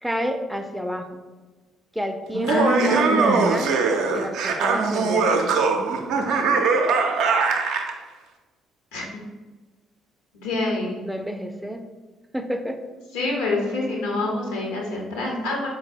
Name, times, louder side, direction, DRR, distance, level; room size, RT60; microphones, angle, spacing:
voice 1, 0.0-1.2 1.9-5.7 11.0-11.8 12.3-12.8, equal, 5° right, 6 dB, 0.4 m, -30 dB
Laughter, 2.3-7.9, right 4 dB, 65° right, 0.4 m, -21 dB
voice 2, 2.5-3.5 8.9-9.1 10.3-11.0 13.1-15.7, left 1 dB, 75° left, -1 dB, 0.9 m, -25 dB
4.0 x 2.1 x 4.2 m, 1.3 s
figure-of-eight pair, 45°, 0 cm